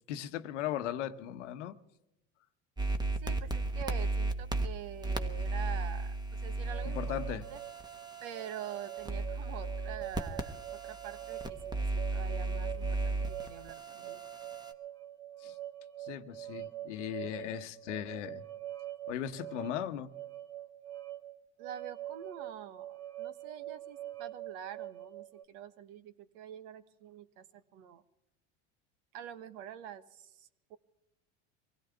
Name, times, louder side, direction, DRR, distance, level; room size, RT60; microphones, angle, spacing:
voice 1, 0.1-1.8 6.9-7.4 15.4-15.6 16.0-18.4 19.1-20.1, left 11 dB, 90° left, 1.1 m, -38 dB
sound 1, 2.8-14.7, right 2 dB, 10° right, 1.2 m, -35 dB
voice 2, 3.2-7.6 8.2-14.2 21.6-28.0 29.1-30.8, right 9 dB, 70° right, 1.3 m, -46 dB
sound 2, 6.7-25.4, right 13 dB, 45° right, 1.7 m, -45 dB
24.0 x 16.5 x 3.5 m
supercardioid pair, 100°, 35 cm